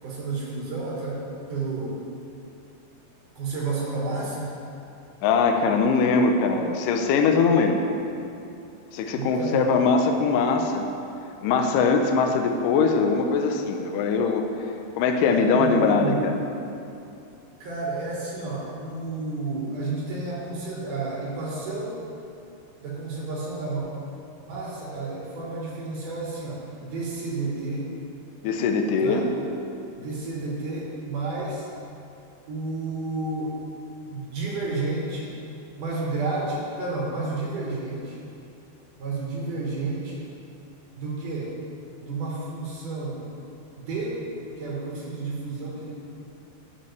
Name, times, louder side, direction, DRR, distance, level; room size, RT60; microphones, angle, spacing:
voice 1, 0.0-2.1 3.4-4.6 9.1-9.8 15.2-16.3 17.6-22.1 22.8-23.8 24.5-27.9 29.0-29.2 30.0-31.7 32.5-33.6 34.1-35.3 35.8-38.2 39.0-40.2 41.0-41.5 42.0-43.2 43.8-44.2 44.6-45.9, right 3 dB, 65° right, -4 dB, 2.6 m, -31 dB
voice 2, 5.2-7.8 8.9-10.8 11.4-14.4 15.0-16.4 28.4-29.2, left 4 dB, 85° left, 4 dB, 2.0 m, -21 dB
11.5 x 7.6 x 3.2 m, 2.7 s
omnidirectional pair, 4.4 m